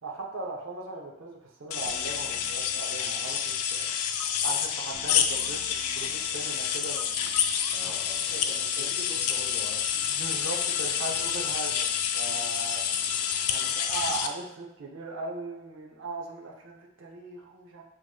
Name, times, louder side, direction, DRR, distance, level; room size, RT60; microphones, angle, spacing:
voice 1, 0.0-3.8 4.4-7.4 7.8-7.9 8.3-8.9 9.9-11.9 12.1-12.8 13.5-17.8, right 3 dB, 60° right, -1 dB, 0.6 m, -38 dB
sound 1, 1.7-14.3, left 8 dB, 75° left, 0.3 m, -28 dB
Keyboard (musical), 1.8-3.5 4.9-13.3, right 1 dB, 15° right, 1.2 m, -56 dB
voice 2, 7.7-9.9, left 1 dB, 10° left, -4 dB, 0.5 m, -45 dB
4.6 x 2.9 x 2.2 m, 0.83 s
head